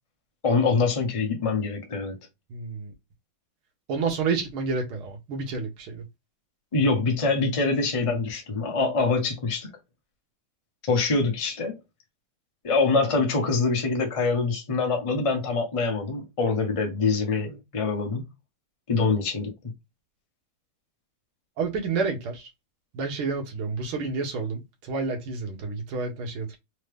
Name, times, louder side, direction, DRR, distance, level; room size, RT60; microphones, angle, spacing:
voice 1, 0.4-2.1 6.7-9.7 10.8-11.8 12.6-18.2 18.9-19.5, left 4 dB, 30° left, 0.6 m, -24 dB
voice 2, 2.5-2.9 3.9-6.0 21.6-22.5 22.9-26.6, right 4 dB, 70° right, 2.1 m, -29 dB
4.3 x 2.8 x 3.4 m
omnidirectional pair, 2.4 m